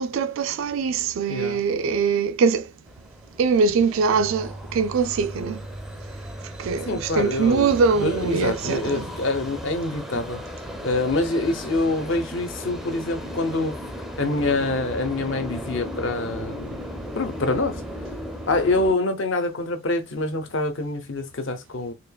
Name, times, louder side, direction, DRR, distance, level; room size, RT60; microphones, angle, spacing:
voice 1, 0.0-2.7 3.4-5.6 6.4-9.1, right 5 dB, 70° right, 0.3 m, -23 dB
voice 2, 1.3-1.6 6.9-7.7 8.0-10.4 10.8-13.7 14.2-16.8 17.2-17.8 18.5-21.9, left 2 dB, 60° left, 0.7 m, -25 dB
sound 1, 2.9-19.0, equal, ahead, 0.5 m, -36 dB
4.4 x 2.9 x 2.2 m
head